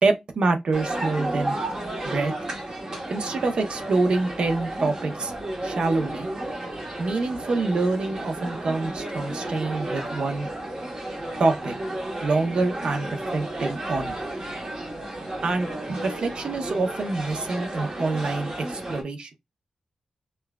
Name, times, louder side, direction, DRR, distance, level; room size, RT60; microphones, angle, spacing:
voice 1, 0.0-1.6 2.0-2.3 3.1-5.3 5.6-6.3 7.0-10.5 11.4-11.7 12.2-14.2 15.4-19.3, right 3 dB, 50° right, 0.7 m, -26 dB
sound 1, 0.7-19.0, right 1 dB, 30° right, 1.0 m, -33 dB
5.4 x 2.3 x 2.2 m
wide cardioid pair, 160°, 2 cm